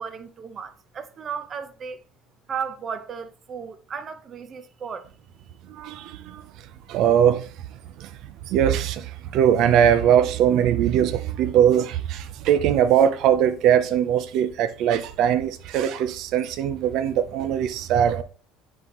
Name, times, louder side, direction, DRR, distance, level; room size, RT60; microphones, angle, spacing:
voice 1, 0.0-2.0 2.5-5.1, right 6 dB, 35° right, 0.8 m, -34 dB
voice 2, 6.9-7.4 8.5-9.0 9.3-18.2, right 9 dB, 65° right, 0.5 m, -20 dB
9.6 x 4.1 x 3.0 m
supercardioid pair, 115°, 0 cm